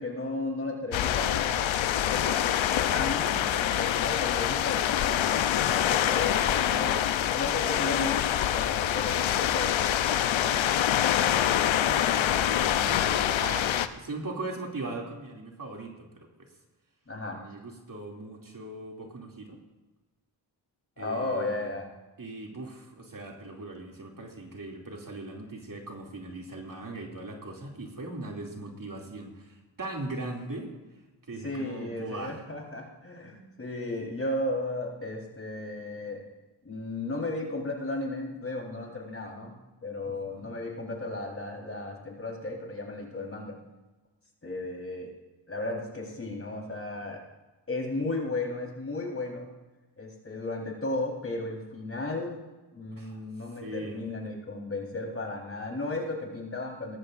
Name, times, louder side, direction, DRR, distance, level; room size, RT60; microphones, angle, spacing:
voice 1, 0.0-2.4 2.9-7.0 7.3-10.9 17.1-17.5 21.0-21.9 31.4-36.2 36.6-39.5 39.8-43.6 44.4-45.1 45.5-47.2 47.7-49.5 50.0-52.4 52.7-57.0, left 2 dB, 30° left, 0 dB, 4.1 m, -35 dB
sound 1, 0.9-13.9, left 11 dB, 80° left, 0.8 m, -25 dB
voice 2, 11.3-13.7 14.0-16.5 17.3-19.6 21.0-21.7 22.2-30.7 31.3-32.4 40.0-40.5 53.0-53.2 53.6-54.0, right 2 dB, 45° right, 0 dB, 2.8 m, -40 dB
18.5 x 14.0 x 2.6 m, 1.2 s
cardioid pair, 60°, 46 cm